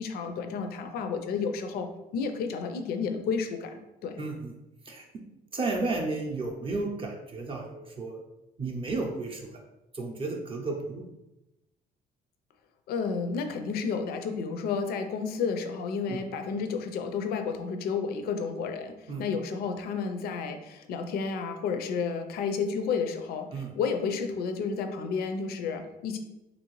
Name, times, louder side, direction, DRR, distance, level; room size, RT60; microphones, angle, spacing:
voice 1, 0.0-1.9 2.1-4.2 12.9-26.2, left 5 dB, 65° left, 6 dB, 0.4 m, -31 dB
voice 2, 4.2-4.5 4.9-5.2 5.5-8.2 8.6-9.5 9.9-11.0 16.1-16.2 19.1-19.2 23.5-23.7, right 3 dB, 30° right, 0 dB, 0.5 m, -33 dB
3.1 x 2.6 x 3.0 m, 0.94 s
cardioid pair, 110°, 17 cm